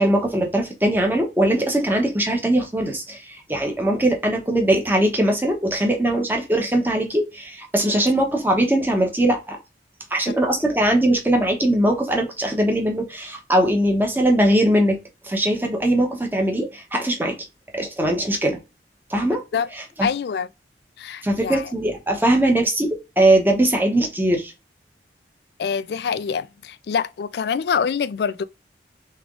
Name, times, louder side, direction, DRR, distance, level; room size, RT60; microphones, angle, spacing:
voice 1, 0.0-9.6 10.1-15.0 15.2-17.3 17.7-18.6 19.1-19.4 20.0-20.1 21.2-24.5, right 1 dB, 10° right, 1.0 m, -20 dB
voice 2, 20.0-20.5 21.0-21.7 25.6-28.4, left 6 dB, 65° left, 0.3 m, -25 dB
3.6 x 3.4 x 3.6 m
head